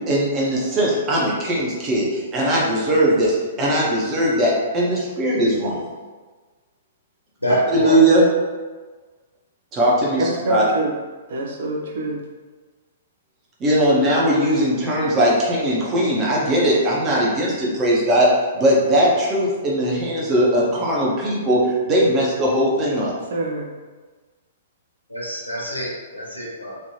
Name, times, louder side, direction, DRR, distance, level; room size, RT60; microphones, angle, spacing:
voice 1, 0.1-5.8 7.7-8.3 9.7-10.6 13.6-18.3 18.5-23.1, right 1 dB, 25° right, -4 dB, 1.0 m, -19 dB
voice 2, 7.4-8.0 25.1-26.8, equal, 90° left, -4 dB, 0.9 m, -25 dB
voice 3, 10.2-10.9 11.3-12.2 23.3-23.7, right 2 dB, 60° right, 0 dB, 0.6 m, -25 dB
3.3 x 2.6 x 2.7 m, 1.4 s
figure-of-eight pair, 110°, 0 cm